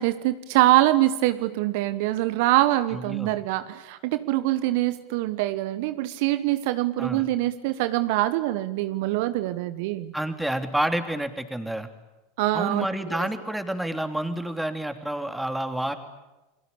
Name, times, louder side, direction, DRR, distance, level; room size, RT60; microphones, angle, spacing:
voice 1, 0.0-10.1 12.4-12.8 13.1-13.3, right 16 dB, 60° right, 13 dB, 1.1 m, -24 dB
voice 2, 2.9-3.3 7.0-7.3 10.1-11.9 12.5-15.9, right 1 dB, 5° right, 7 dB, 3.1 m, -29 dB
30.0 x 22.5 x 8.6 m, 1.1 s
figure-of-eight pair, 85°, 0 cm